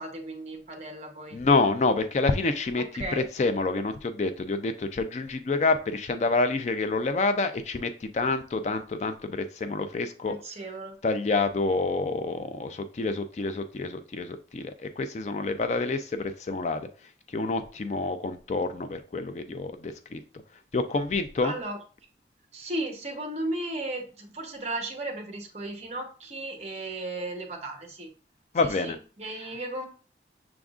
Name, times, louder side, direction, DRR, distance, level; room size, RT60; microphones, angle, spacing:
voice 1, 0.0-1.4 2.7-3.3 10.3-11.0 21.4-21.8 22.5-28.1 28.6-29.9, right 2 dB, 35° right, 4 dB, 0.8 m, -35 dB
voice 2, 1.3-10.4 11.0-16.9 17.3-20.2 20.7-21.5 28.5-29.0 29.4-29.5, left 3 dB, 40° left, 9 dB, 0.3 m, -28 dB
6.1 x 3.6 x 2.4 m, 0.38 s
head